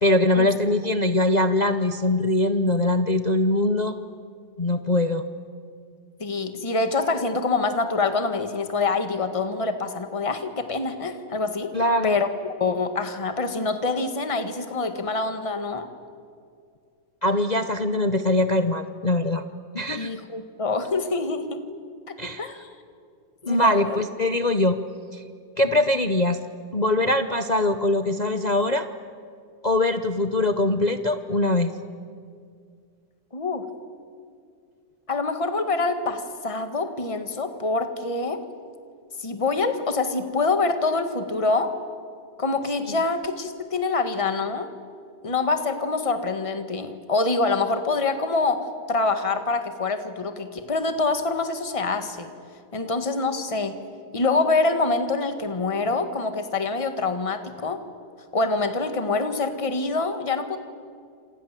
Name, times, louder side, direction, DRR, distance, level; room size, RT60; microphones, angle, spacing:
voice 1, 0.0-3.9 4.6-5.2 11.7-12.2 17.2-19.4 19.7-20.1 22.2-22.5 23.4-24.8 25.1-25.2 25.6-26.4 26.7-28.9 29.6-31.7, left 1 dB, 40° left, 9 dB, 0.6 m, -22 dB
voice 2, 6.2-11.7 12.0-15.9 20.0-21.6 22.1-22.7 23.5-24.0 33.3-33.6 35.1-38.4 39.2-41.7 42.4-44.7 45.2-48.6 48.9-52.3 52.7-53.8 54.1-57.8 58.3-60.6, left 3 dB, 20° left, 8 dB, 1.6 m, -25 dB
28.0 x 27.5 x 7.5 m, 2.3 s
omnidirectional pair, 2.0 m